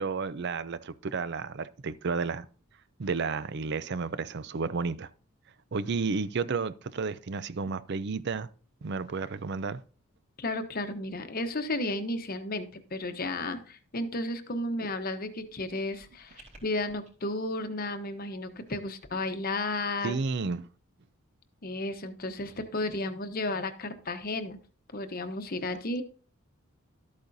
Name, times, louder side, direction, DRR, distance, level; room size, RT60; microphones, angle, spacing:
voice 1, 0.0-2.5 3.0-5.1 5.7-8.5 8.8-9.8 20.0-20.7, right 4 dB, 50° right, 0.5 m, -32 dB
voice 2, 10.4-20.2 21.6-24.6 24.9-26.0, left 2 dB, 45° left, 0.9 m, -33 dB
sound 1, 15.2-17.1, right 1 dB, 35° right, 3.2 m, -56 dB
12.5 x 8.5 x 2.7 m
head